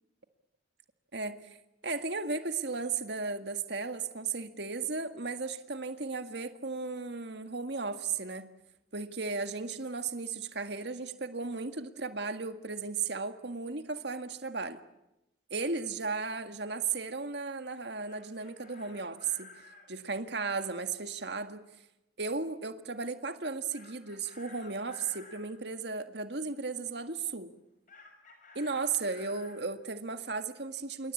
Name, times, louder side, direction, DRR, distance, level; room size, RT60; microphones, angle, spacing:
voice 1, 1.1-1.6 1.8-8.5 8.9-14.8 15.5-19.5 19.9-21.6 22.2-27.5 28.6-31.1, right 4 dB, 60° right, 1.9 m, -35 dB
Chicken rooster, 17.8-19.9 23.7-25.5 27.9-29.6, left 3 dB, 40° left, 6.4 m, -54 dB
27.5 x 23.5 x 8.6 m
head